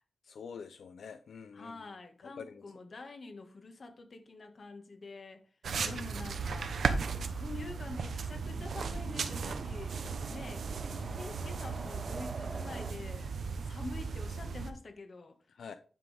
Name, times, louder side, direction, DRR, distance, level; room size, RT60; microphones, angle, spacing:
voice 1, 0.2-1.9 2.2-2.6 5.7-6.0 11.0-11.2 15.5-15.7, left 6 dB, 80° left, 0.5 m, -47 dB
voice 2, 1.5-5.4 5.8-6.8 7.3-10.0 10.3-10.7 11.1-13.3 13.6-15.4, left 3 dB, 45° left, 1.6 m, -46 dB
sound 1, 5.6-14.7, right 5 dB, 75° right, 1.0 m, -36 dB
sound 2, 6.7-12.9, right 3 dB, 50° right, 1.7 m, -48 dB
10.0 x 6.2 x 3.5 m
wide cardioid pair, 110°, 0 cm